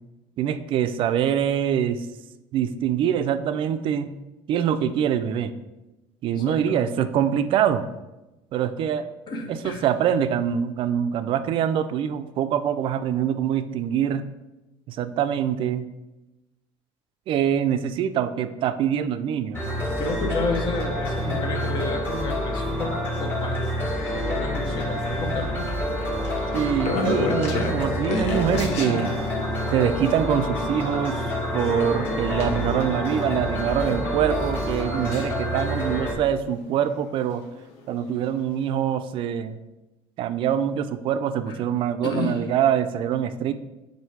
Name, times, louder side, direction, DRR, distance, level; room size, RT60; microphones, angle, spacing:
voice 1, 0.4-2.1 2.5-4.1 4.5-5.5 6.2-7.9 8.5-9.1 9.5-14.2 14.9-15.9 17.3-19.6 26.5-29.1 29.7-37.4 37.9-39.6 40.2-43.5, right 9 dB, 50° right, 11 dB, 0.4 m, -24 dB
voice 2, 6.3-6.9 9.3-9.8 19.8-23.7 24.1-25.7 27.2-27.3 41.5-41.6 42.0-42.4, left 3 dB, 40° left, 4 dB, 0.9 m, -31 dB
sound 1, 19.5-36.1, equal, 20° left, 1.5 m, -27 dB
sound 2, 21.0-35.7 36.8-38.0 38.4-38.5, left 3 dB, 70° left, 0.9 m, -34 dB
7.9 x 2.7 x 4.5 m, 1.0 s
cardioid pair, 150°, 11 cm